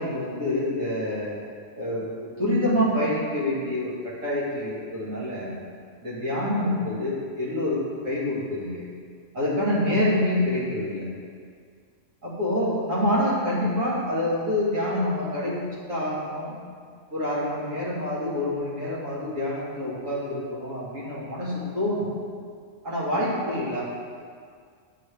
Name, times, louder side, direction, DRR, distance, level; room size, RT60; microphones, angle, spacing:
voice 1, 0.0-1.4 1.8-5.5 6.0-8.8 9.3-11.1 12.2-16.6 17.1-22.1 22.8-23.8, left 1 dB, 90° right, -8 dB, 2.3 m, -27 dB
7.5 x 6.8 x 3.3 m, 2.1 s
omnidirectional pair, 1.3 m